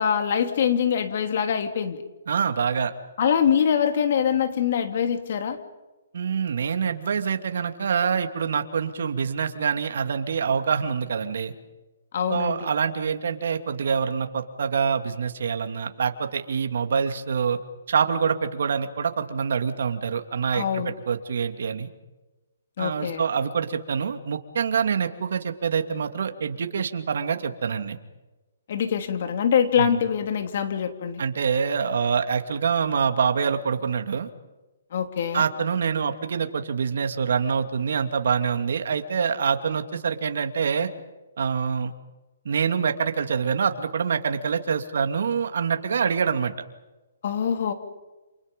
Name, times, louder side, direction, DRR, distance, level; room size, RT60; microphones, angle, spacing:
voice 1, 0.0-2.0 3.2-5.6 12.1-12.7 20.5-20.9 22.8-23.2 28.7-31.2 34.9-35.4 47.2-47.7, left 8 dB, 50° left, 7 dB, 3.0 m, -24 dB
voice 2, 2.3-2.9 6.1-11.5 12.3-17.6 17.9-21.9 22.8-28.0 29.8-30.0 31.2-34.3 35.3-40.9 41.4-41.9 42.4-46.5, right 6 dB, 65° right, 7 dB, 2.6 m, -25 dB
29.5 x 28.5 x 5.4 m, 1.1 s
hypercardioid pair, 160°, 0 cm